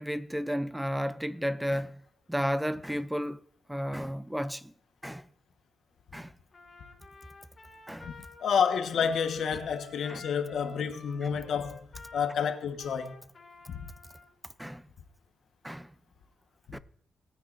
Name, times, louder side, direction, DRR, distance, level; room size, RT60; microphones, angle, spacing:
voice 1, 0.0-2.0 2.3-3.4 3.7-4.7 5.0-5.3 6.1-6.3 7.9-8.1 10.1-10.2 14.6-14.8 15.6-15.9 16.7-16.8, equal, 5° right, 0.4 m, -32 dB
Trumpet, 6.5-14.3, left 4 dB, 35° left, 1.6 m, -51 dB
voice 2, 8.4-11.9 12.1-13.1 13.7-13.9, left 7 dB, 65° left, 1.2 m, -29 dB
19.0 x 9.4 x 2.6 m
wide cardioid pair, 140°, 0 cm